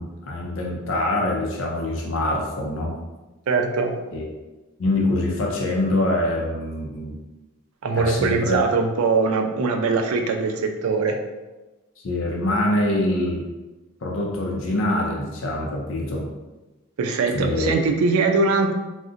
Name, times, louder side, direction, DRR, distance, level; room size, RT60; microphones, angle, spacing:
voice 1, 0.0-2.9 4.1-4.2 4.8-7.2 8.0-8.6 12.0-13.4 14.0-16.3 17.3-17.7, left 1 dB, 60° left, -1 dB, 0.5 m, -24 dB
voice 2, 3.5-3.9 7.8-11.2 17.0-18.7, right 4 dB, 90° right, 4 dB, 0.4 m, -21 dB
3.7 x 2.1 x 2.5 m, 1.1 s
head